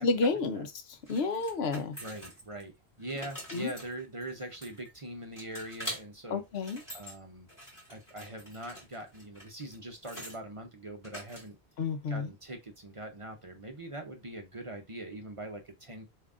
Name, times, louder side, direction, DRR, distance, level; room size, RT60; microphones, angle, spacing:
voice 1, 0.0-2.0 3.5-3.7 6.3-6.8 11.8-12.3, left 4 dB, 75° left, 0.9 m, -30 dB
sound 1, 1.1-2.6 3.0-5.0 5.4-6.0 6.5-7.1 7.5-10.4 11.0-11.7, equal, 15° left, 2.7 m, -45 dB
voice 2, 2.0-2.7 3.0-6.4 6.9-7.5 7.9-11.6 12.1-16.0, right 1 dB, 35° right, 0.7 m, -42 dB
6.9 x 2.7 x 2.5 m
omnidirectional pair, 1.1 m